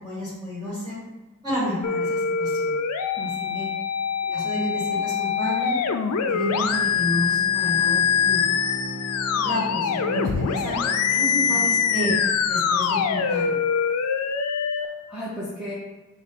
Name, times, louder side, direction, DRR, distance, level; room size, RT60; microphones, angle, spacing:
voice 1, 0.0-1.0 1.4-2.8 3.5-3.7 4.3-5.8 6.3-8.4 9.3-13.6, left 1 dB, 20° right, -11 dB, 1.5 m, -30 dB
sound 1, 1.8-14.9, left 6 dB, 80° left, 0.4 m, -24 dB
voice 2, 3.2-3.6 10.1-10.4 11.4-11.6 14.7-15.7, equal, 5° right, -10 dB, 0.7 m, -36 dB
Bowed string instrument, 5.5-13.3, left 1 dB, 40° left, 0.8 m, -39 dB
6.3 x 2.2 x 3.6 m, 1.1 s
head